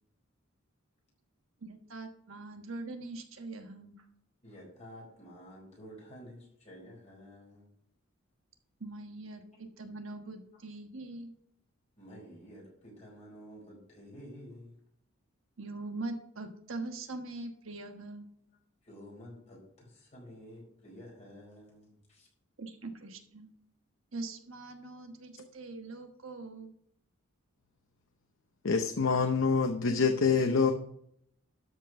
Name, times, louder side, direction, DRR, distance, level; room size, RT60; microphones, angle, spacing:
voice 1, 1.6-4.0 8.8-11.3 15.6-18.3 22.6-23.5 24.1-26.7, right 2 dB, 65° right, 5 dB, 1.3 m, -42 dB
voice 2, 4.4-7.7 12.0-14.8 18.8-22.3, equal, 30° left, -3 dB, 4.7 m, -51 dB
voice 3, 28.6-30.7, left 5 dB, 65° left, 6 dB, 0.7 m, -26 dB
12.5 x 5.4 x 5.3 m, 0.69 s
head